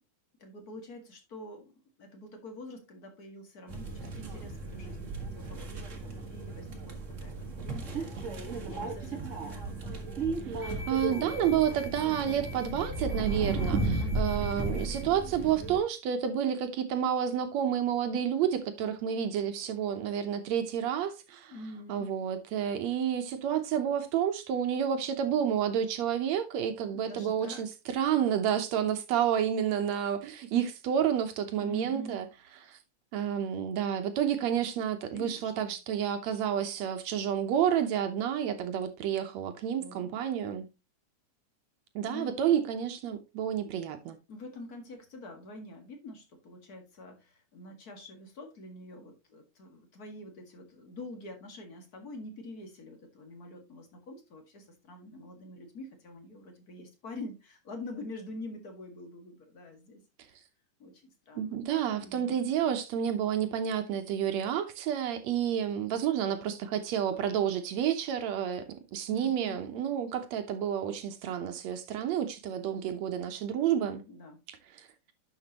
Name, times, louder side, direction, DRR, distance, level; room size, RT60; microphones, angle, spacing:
voice 1, 0.4-1.7 2.0-8.1 8.5-10.1 13.9-14.5 21.5-22.1 26.9-27.6 31.6-32.3 35.1-35.7 39.8-40.2 42.0-42.4 44.3-60.0 60.4-60.5 60.8-61.6 61.9-62.4 69.1-69.6 74.1-74.4, left 1 dB, 35° left, 1.8 m, -46 dB
sound 1, 3.7-15.8, right 3 dB, 40° right, 1.1 m, -35 dB
voice 2, 10.4-21.5 21.9-32.3 32.7-32.8 33.1-40.7 42.0-44.2 61.4-74.0 74.5-74.9, right 9 dB, 70° right, 1.9 m, -30 dB
11.0 x 6.0 x 2.9 m
omnidirectional pair, 3.6 m